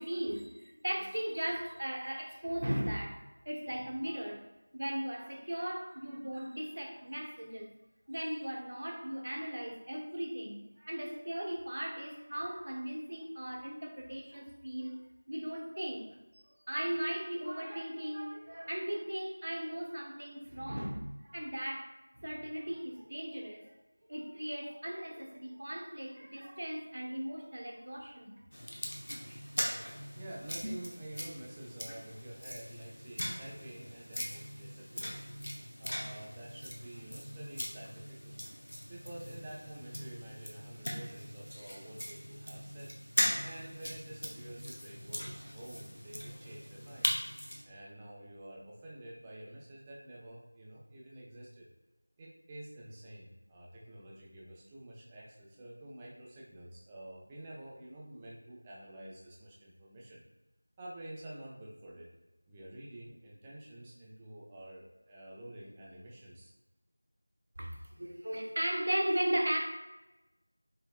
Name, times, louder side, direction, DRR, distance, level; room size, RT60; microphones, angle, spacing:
voice 1, 0.0-4.4 4.7-7.7 8.1-16.2 16.7-23.7 24.1-28.4 67.6-69.7, right 1 dB, 50° right, 0 dB, 0.9 m, -37 dB
sound 1, 28.5-47.6, equal, 60° left, 0.8 m, -40 dB
voice 2, 30.1-35.3 35.8-38.4 38.9-43.0 43.4-47.2 47.6-51.7 52.2-60.2 60.8-62.1 62.5-66.5, right 1 dB, 10° right, -4 dB, 0.4 m, -49 dB
sound 2, 30.5-31.0, equal, 80° right, 0.8 m, -42 dB
5.2 x 3.0 x 2.3 m, 1.1 s
figure-of-eight pair, 175°, 0 cm